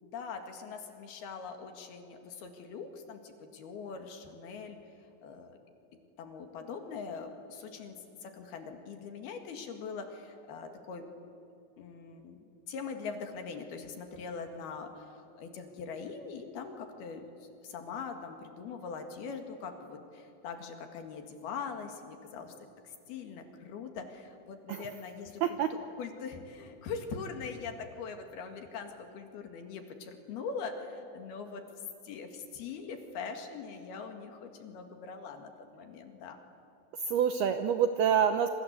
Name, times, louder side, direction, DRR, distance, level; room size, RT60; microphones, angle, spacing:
voice 1, 0.0-4.8 5.2-5.6 6.2-11.0 11.8-12.4 12.7-25.6 26.0-31.6 32.0-36.4, left 5 dB, 60° left, 6 dB, 3.5 m, -42 dB
voice 2, 37.0-38.5, right 8 dB, 80° right, 8 dB, 2.3 m, -27 dB
27.5 x 26.5 x 8.2 m, 2.8 s
omnidirectional pair, 5.6 m